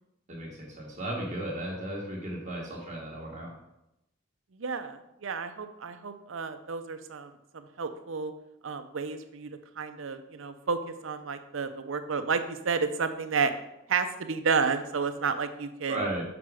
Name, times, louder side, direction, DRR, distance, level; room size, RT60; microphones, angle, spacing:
voice 1, 0.3-3.6 15.9-16.2, right 1 dB, 35° right, -3 dB, 1.3 m, -35 dB
voice 2, 4.5-8.3 8.6-13.5 13.9-16.0, right 5 dB, 70° right, 9 dB, 0.6 m, -31 dB
6.0 x 5.0 x 4.8 m, 0.86 s
head